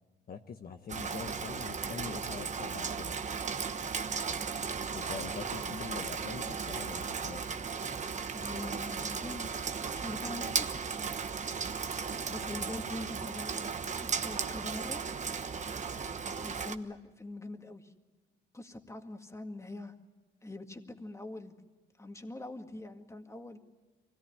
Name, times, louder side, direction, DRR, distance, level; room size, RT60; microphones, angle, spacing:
voice 1, 0.3-3.2 4.9-7.4, left 6 dB, 50° left, 5 dB, 1.1 m, -43 dB
Rain, 0.9-16.7, right 5 dB, 35° right, 1.1 m, -36 dB
voice 2, 8.3-10.9 12.1-15.0 16.2-17.9 18.5-19.9 20.4-21.6 22.0-23.6, left 2 dB, 15° left, 5 dB, 2.0 m, -43 dB
24.0 x 17.5 x 10.0 m, 1.2 s
cardioid pair, 90°, 20 cm